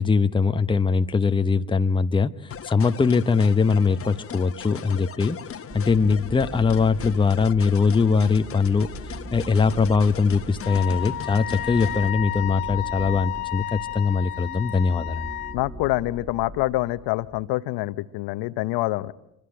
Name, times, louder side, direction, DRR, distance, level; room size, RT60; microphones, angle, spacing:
voice 1, 0.0-5.4 5.7-15.3, left 5 dB, 10° left, 10 dB, 0.9 m, -21 dB
sound 1, 2.5-12.1, left 8 dB, 30° left, 1.4 m, -39 dB
sound 2, 5.7-17.4, right 1 dB, 10° right, 2.1 m, -41 dB
Wind instrument woodwind instrument, 10.6-15.6, left 15 dB, 85° left, 1.0 m, -32 dB
voice 2, 15.5-19.1, left 18 dB, 60° left, 14 dB, 1.1 m, -26 dB
27.0 x 24.0 x 7.8 m, 0.84 s
hypercardioid pair, 75°, 44 cm